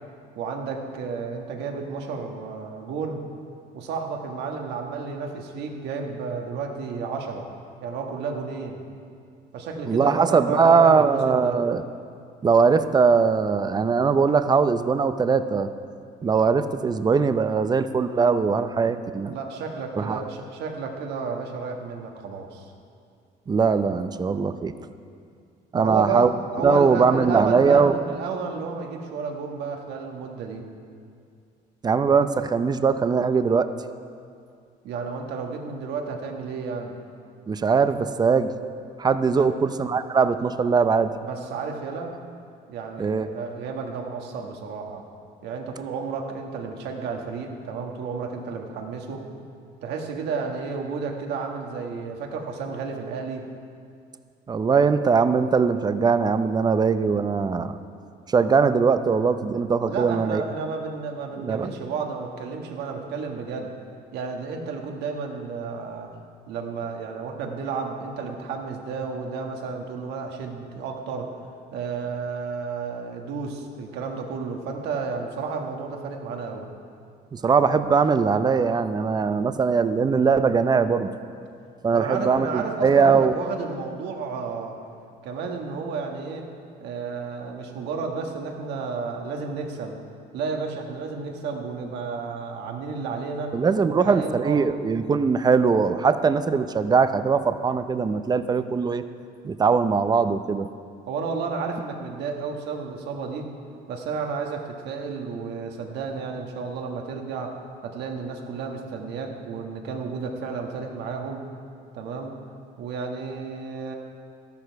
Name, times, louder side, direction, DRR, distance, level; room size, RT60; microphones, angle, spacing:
voice 1, 0.3-3.2 3.7-7.4 7.8-8.8 9.5-11.6 19.2-22.7 25.7-26.3 26.6-30.6 34.8-36.9 39.4-39.5 41.2-42.1 42.7-45.0 45.4-49.2 49.8-53.5 59.8-63.7 64.1-66.1 66.5-71.3 71.7-76.6 81.9-84.8 85.2-86.5 86.8-90.0 90.3-93.5 93.9-94.6 101.1-103.5 103.9-107.5 107.8-111.4 111.9-112.3 112.8-113.9, right 5 dB, 80° right, 2 dB, 1.6 m, -32 dB
voice 2, 9.9-11.8 12.4-15.7 16.2-19.3 20.0-20.2 23.5-24.7 25.7-26.3 26.6-27.9 31.8-33.7 37.5-38.5 39.0-41.1 43.0-43.3 54.5-57.8 58.3-60.4 61.4-61.7 77.3-81.1 81.8-83.3 93.5-99.0 99.4-100.7, right 5 dB, 25° right, 11 dB, 0.6 m, -21 dB
13.0 x 12.0 x 4.7 m, 2.3 s
cardioid pair, 110°, 17 cm